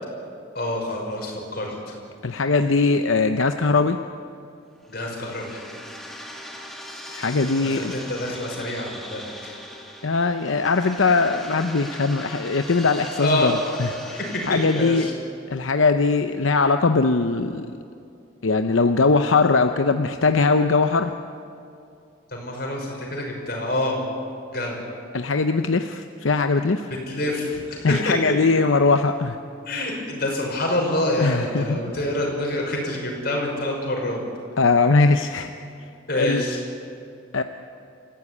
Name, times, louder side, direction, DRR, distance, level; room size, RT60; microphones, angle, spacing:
voice 1, 0.5-2.0 4.9-5.6 7.6-9.5 13.1-13.5 14.3-15.1 22.3-24.0 24.5-24.8 27.1-28.3 29.7-34.2 36.1-36.6, left 1 dB, 50° left, 0 dB, 5.8 m, -27 dB
voice 2, 2.2-4.0 7.1-7.9 10.0-14.2 14.4-15.1 15.5-17.7 18.4-21.1 25.1-26.9 27.8-29.4 31.2-31.8 34.6-35.6 36.1-36.4 37.3-37.4, left 4 dB, 80° left, 7 dB, 0.8 m, -20 dB
sound 1, 4.8-15.1, equal, ahead, 2.3 m, -39 dB
28.0 x 15.0 x 9.7 m, 2.6 s
head